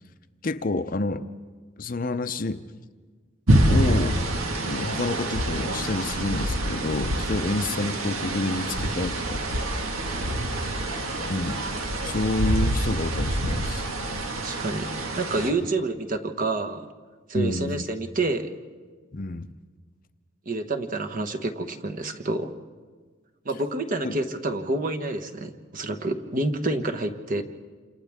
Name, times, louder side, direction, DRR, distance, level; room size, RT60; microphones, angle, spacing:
voice 1, 0.4-1.3 1.8-2.6 3.6-4.2 4.7-9.4 11.3-11.6 12.0-13.8 17.3-17.8 19.1-19.5 24.0-24.2, left 2 dB, 40° left, 10 dB, 0.6 m, -28 dB
sound 1, 3.5-15.5, right 1 dB, 90° right, 1.8 m, -26 dB
voice 2, 14.4-16.9 17.3-18.5 20.5-22.5 23.4-27.4, right 2 dB, 40° right, 5 dB, 1.2 m, -28 dB
29.0 x 27.0 x 3.6 m, 1.5 s
head